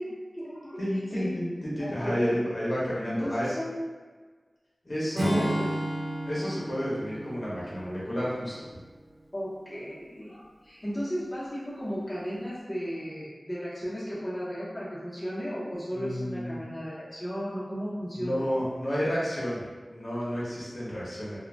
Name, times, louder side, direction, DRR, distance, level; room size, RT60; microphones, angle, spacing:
voice 1, 0.0-0.8 1.1-1.3 1.8-2.4 3.0-3.8 5.4-5.7 9.3-18.4, equal, 30° left, -9 dB, 0.7 m, -35 dB
voice 2, 0.8-3.5 4.8-5.4 6.3-8.6 15.9-16.6 18.1-19.6 19.9-21.4, equal, 60° left, -8 dB, 0.9 m, -30 dB
Acoustic guitar / Strum, 5.2-8.6, right 1 dB, 90° right, 0.7 m, -32 dB
2.5 x 2.1 x 3.2 m, 1.4 s
wide cardioid pair, 60°, 0 cm